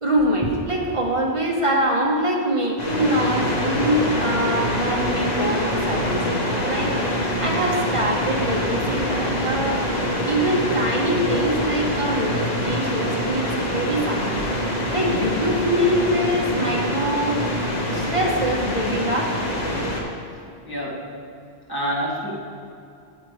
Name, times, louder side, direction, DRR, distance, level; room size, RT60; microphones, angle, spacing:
voice 1, 0.0-6.9 7.2-9.8 10.2-14.4 14.7-17.4 17.9-19.3, right 1 dB, 30° right, -2 dB, 1.2 m, -24 dB
sound 1, 2.8-20.0, left 1 dB, 40° left, 1.3 m, -25 dB
voice 2, 20.7-21.1 21.7-22.3, equal, 20° left, -7 dB, 1.9 m, -27 dB
9.8 x 8.3 x 3.2 m, 2.5 s
omnidirectional pair, 1.1 m